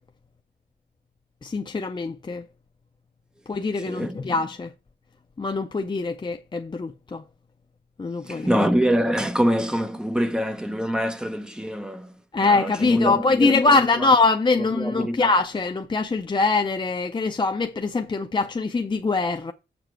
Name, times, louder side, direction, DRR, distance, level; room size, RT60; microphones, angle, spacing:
voice 1, 1.4-2.4 3.5-4.7 5.4-7.2 8.0-8.5 12.3-19.5, left 3 dB, 25° left, 0.5 m, -23 dB
voice 2, 3.8-4.2 8.3-12.1 12.4-14.1 14.8-15.3, equal, 5° right, 0.8 m, -25 dB
7.2 x 6.9 x 4.5 m
wide cardioid pair, 175°, 18 cm